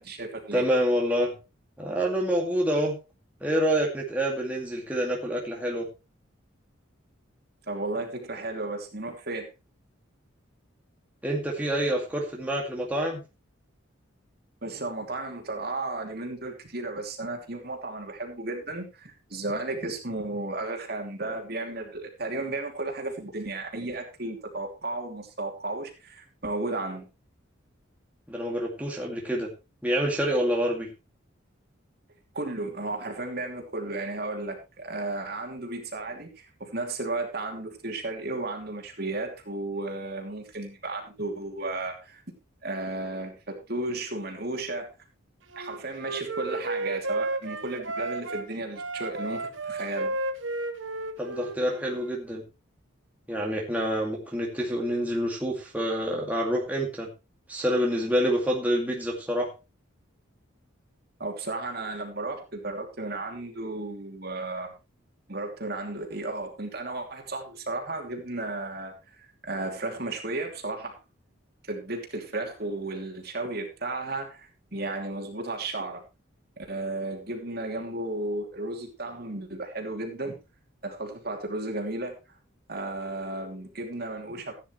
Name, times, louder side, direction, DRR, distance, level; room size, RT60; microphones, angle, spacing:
voice 1, 0.0-0.7 7.7-9.5 14.6-27.0 32.3-42.2 42.6-44.9 45.6-50.2 61.2-64.7 65.3-70.9 71.7-76.0 76.6-80.4 80.8-82.1 82.7-84.5, right 2 dB, 50° right, 2 dB, 2.9 m, -34 dB
voice 2, 0.5-1.3 1.8-3.0 3.4-5.9 11.2-13.2 28.3-29.5 29.8-30.9 51.2-52.4 53.3-57.1 57.5-59.5, equal, 10° right, -2 dB, 2.2 m, -27 dB
Wind instrument woodwind instrument, 45.5-48.5 48.8-52.1, right 2 dB, 70° right, 1.2 m, -33 dB
15.0 x 9.9 x 3.2 m, 0.27 s
head